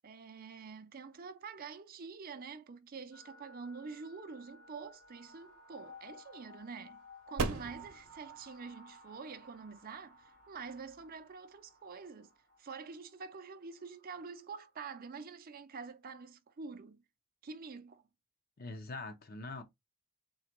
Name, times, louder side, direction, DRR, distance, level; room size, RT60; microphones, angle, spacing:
voice 1, 0.0-12.3 12.6-17.0 17.4-18.0, right 5 dB, 40° right, 0.5 m, -47 dB
sound 1, 3.1-14.8, left 1 dB, 70° left, 2.1 m, -57 dB
sound 2, 4.7-12.1, right 3 dB, 70° right, 0.8 m, -44 dB
voice 2, 18.6-19.6, left 3 dB, 40° left, 0.7 m, -43 dB
3.9 x 2.2 x 4.4 m
head